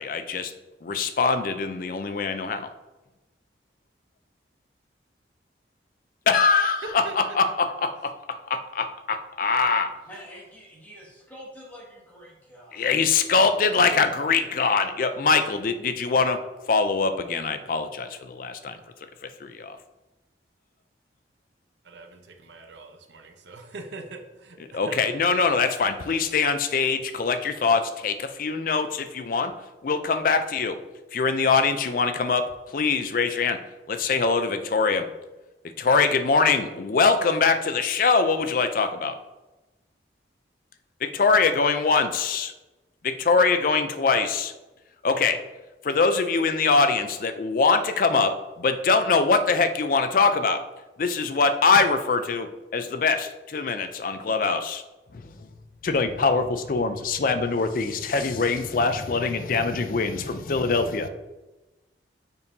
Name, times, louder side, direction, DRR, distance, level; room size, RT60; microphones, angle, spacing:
voice 1, 0.0-0.5 0.8-2.7 6.3-9.9 12.7-16.4 16.7-18.8 19.2-19.8 24.7-29.5 29.8-30.8 31.1-33.6 33.9-35.1 35.8-39.2 41.0-42.5 43.0-44.5 45.0-45.4 45.8-50.6 51.0-54.8 55.1-55.5 55.8-61.1, left 4 dB, 50° left, 9 dB, 0.4 m, -23 dB
voice 2, 10.1-12.9, equal, 10° left, -5 dB, 1.8 m, -46 dB
voice 3, 21.8-25.0, right 3 dB, 75° right, 5 dB, 0.8 m, -42 dB
7.0 x 5.3 x 2.7 m, 1.1 s
head